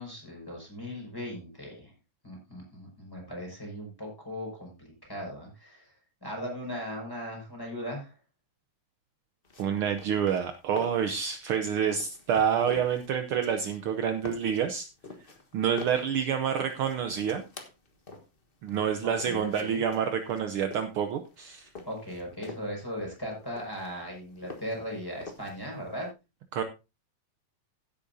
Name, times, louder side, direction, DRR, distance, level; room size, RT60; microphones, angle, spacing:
voice 1, 0.0-1.9 2.2-5.9 6.2-8.1 19.0-19.8 21.9-26.1, equal, 5° left, -1 dB, 5.6 m, -38 dB
sound 1, 9.4-26.1, left 3 dB, 60° left, 0.5 m, -47 dB
voice 2, 9.6-14.9 15.5-17.4 18.6-21.7 26.5-26.6, right 8 dB, 70° right, 7 dB, 1.3 m, -28 dB
16.0 x 8.7 x 2.7 m, 0.27 s
omnidirectional pair, 3.4 m